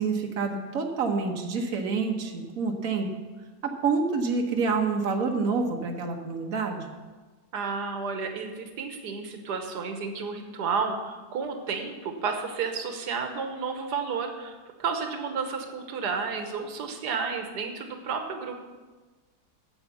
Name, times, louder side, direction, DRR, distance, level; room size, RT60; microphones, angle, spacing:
voice 1, 0.0-3.1 3.6-6.8, right 4 dB, 60° right, 2 dB, 1.5 m, -27 dB
voice 2, 7.5-18.6, right 5 dB, 90° right, 5 dB, 1.6 m, -32 dB
8.9 x 7.8 x 7.0 m, 1.3 s
omnidirectional pair, 1.7 m